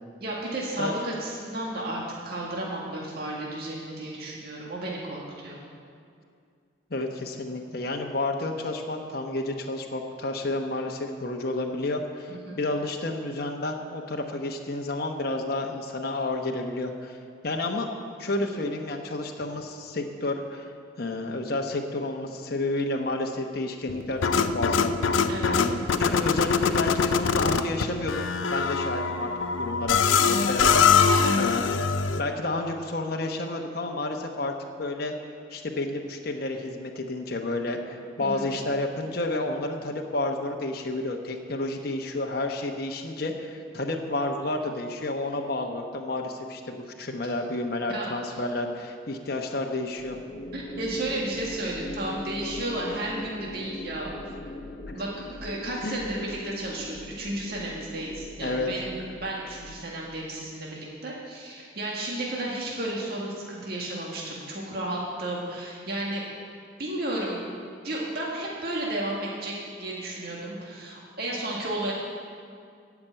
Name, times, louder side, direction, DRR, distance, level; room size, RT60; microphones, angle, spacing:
voice 1, 0.2-5.6 12.3-12.6 18.4-18.5 25.3-25.7 31.2-31.5 38.2-38.4 47.9-48.4 50.5-54.1 54.9-66.2 66.8-67.4 67.8-71.9, right 1 dB, 50° right, -4 dB, 1.8 m, -33 dB
voice 2, 6.9-17.2 17.4-17.9 18.2-20.7 21.0-25.3 25.5-28.1 28.5-29.3 29.6-31.7 32.2-35.1 35.5-50.2 54.9-55.0 55.8-56.0 58.4-58.7, left 2 dB, 50° left, 2 dB, 1.0 m, -30 dB
sound 1, 23.9-32.2, left 6 dB, 80° left, 0.5 m, -23 dB
sound 2, 49.9-60.4, left 2 dB, 30° left, 0.5 m, -41 dB
14.5 x 6.0 x 8.8 m, 2.3 s
head